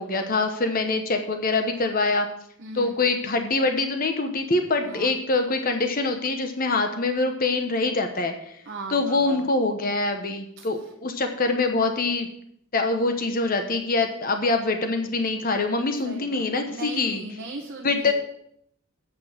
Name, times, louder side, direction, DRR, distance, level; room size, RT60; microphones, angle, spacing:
voice 1, 0.0-2.3 2.7-8.5 8.9-12.3 12.7-17.2 17.8-18.1, left 3 dB, 45° left, 5 dB, 1.0 m, -24 dB
voice 2, 2.6-2.9 4.8-5.1 8.7-9.5 10.6-10.7 16.0-18.1, right 2 dB, 50° right, -1 dB, 1.2 m, -38 dB
8.8 x 5.5 x 7.6 m, 0.71 s
head